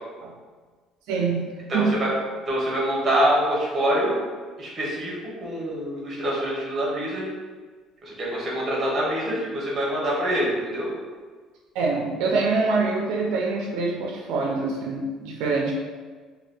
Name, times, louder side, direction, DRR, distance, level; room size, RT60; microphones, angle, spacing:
voice 1, 1.1-2.0 11.7-15.8, right 3 dB, 70° right, -1 dB, 0.4 m, -25 dB
voice 2, 1.7-2.1 2.5-4.2 4.6-7.3 8.0-10.9, equal, 20° right, -5 dB, 0.7 m, -25 dB
2.7 x 2.2 x 3.4 m, 1.4 s
cardioid pair, 180°, 0 cm